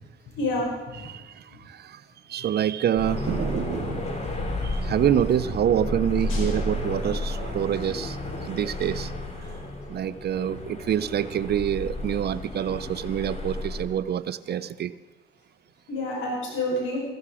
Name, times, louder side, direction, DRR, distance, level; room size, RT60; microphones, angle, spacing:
voice 1, 0.3-1.0 6.3-6.4 14.5-14.6 15.9-17.0, left 1 dB, 80° left, -2 dB, 6.0 m, -29 dB
voice 2, 1.0-2.0 2.3-4.1 4.6-8.2 8.4-9.1 9.9-14.9, right 10 dB, 55° right, 15 dB, 0.7 m, -26 dB
sound 1, 3.0-13.8, left 1 dB, 35° left, 2.8 m, -32 dB
15.0 x 14.5 x 4.9 m, 1.2 s
cardioid pair, 90°, 20 cm